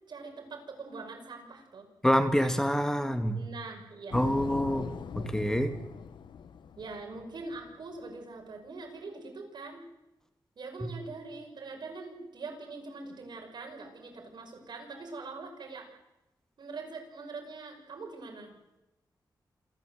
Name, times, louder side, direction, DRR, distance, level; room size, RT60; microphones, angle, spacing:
voice 1, 0.1-1.9 3.3-4.3 6.8-9.8 10.6-15.9 16.6-18.5, right 3 dB, 70° right, 2 dB, 6.1 m, -43 dB
voice 2, 2.0-3.4 4.1-4.9 5.2-5.7 10.8-10.9, equal, 5° left, 7 dB, 2.0 m, -26 dB
sound 1, 4.1-7.8, left 7 dB, 90° left, 1.0 m, -42 dB
27.5 x 13.5 x 7.9 m, 0.96 s
cardioid pair, 80°, 8 cm